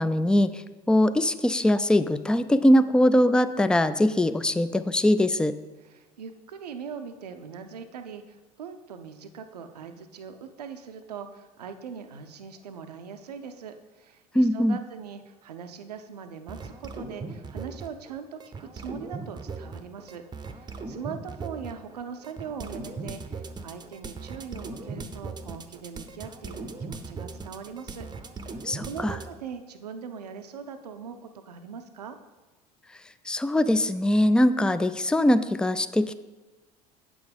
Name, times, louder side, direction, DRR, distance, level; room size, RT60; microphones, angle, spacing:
voice 1, 0.0-5.5 14.3-14.8 28.6-29.2 33.3-36.1, left 1 dB, 5° left, 13 dB, 0.4 m, -22 dB
voice 2, 5.8-28.1 28.4-32.2, right 6 dB, 80° right, 8 dB, 0.6 m, -41 dB
sound 1, 16.5-18.1 18.4-29.3, right 4 dB, 20° right, 0.7 m, -38 dB
8.3 x 6.1 x 5.2 m, 1.2 s
figure-of-eight pair, 65°, 20 cm